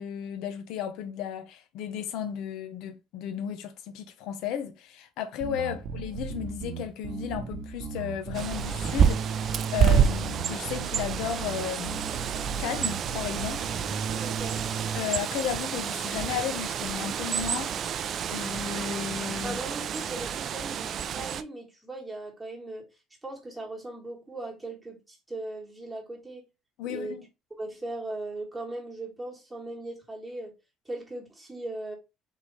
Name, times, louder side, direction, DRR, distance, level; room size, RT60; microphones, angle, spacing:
voice 1, 0.0-12.0 12.6-13.7 14.1-14.2 14.9-19.6 26.8-27.3, left 9 dB, 65° left, 0.7 m, -34 dB
Bass guitar, 5.4-15.0, right 5 dB, 55° right, 0.7 m, -36 dB
Bird, 8.3-21.4, right 8 dB, 40° right, 0.3 m, -29 dB
voice 2, 14.2-14.6 19.4-22.9 23.2-26.4 26.9-27.2 27.6-30.5 30.8-32.0, right 2 dB, 10° right, 1.6 m, -38 dB
3.8 x 3.1 x 4.0 m
cardioid pair, 140°, 0 cm